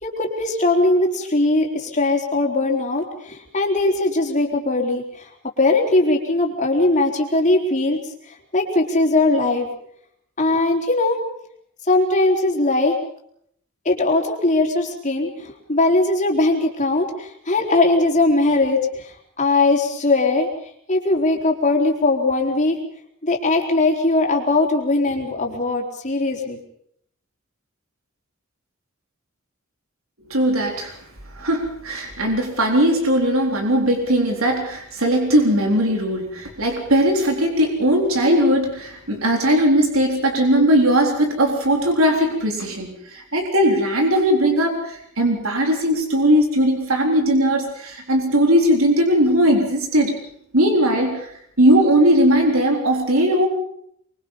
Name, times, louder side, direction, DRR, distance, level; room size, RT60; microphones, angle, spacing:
voice 1, 0.0-5.3 5.6-8.0 8.5-9.7 10.4-11.2 11.9-13.0 13.8-20.5 20.9-22.8 23.2-26.6, left 2 dB, 35° left, 1 dB, 4.1 m, -20 dB
voice 2, 30.3-30.9 31.4-50.2 50.5-51.3 51.6-53.5, equal, 80° right, 2 dB, 3.9 m, -19 dB
25.0 x 23.5 x 5.6 m, 0.69 s
head